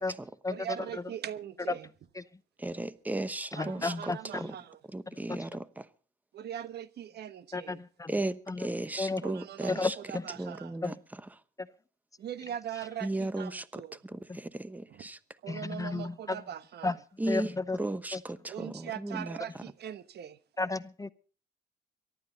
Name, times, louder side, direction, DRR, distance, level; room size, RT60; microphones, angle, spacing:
voice 1, 0.5-1.9 3.6-4.8 6.3-7.8 9.2-10.7 12.2-14.0 15.4-17.0 18.5-20.4, right 9 dB, 60° right, 1.2 m, -41 dB
voice 2, 2.6-4.6 4.9-5.9 8.1-10.0 10.4-11.4 13.0-15.2 17.2-19.6, right 2 dB, 10° right, 1.0 m, -36 dB
voice 3, 3.5-4.2 5.3-5.4 7.5-8.1 8.5-8.7 9.0-9.2 9.7-10.2 10.8-10.9 15.5-16.4 16.8-16.9 17.3-17.8 20.6-21.1, left 3 dB, 15° left, 0.7 m, -32 dB
23.5 x 12.5 x 4.0 m
cardioid pair, 105°, 19 cm